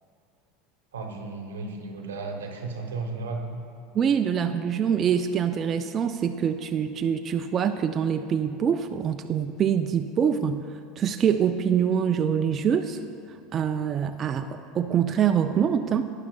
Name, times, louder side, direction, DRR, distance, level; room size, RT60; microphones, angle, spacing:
voice 1, 0.9-3.6, right 3 dB, 90° right, 3 dB, 0.8 m, -34 dB
voice 2, 3.9-10.6 11.0-13.0 13.5-16.1, right 8 dB, 35° right, 7 dB, 0.3 m, -25 dB
12.0 x 9.6 x 2.2 m, 2.5 s
hypercardioid pair, 90°, 0 cm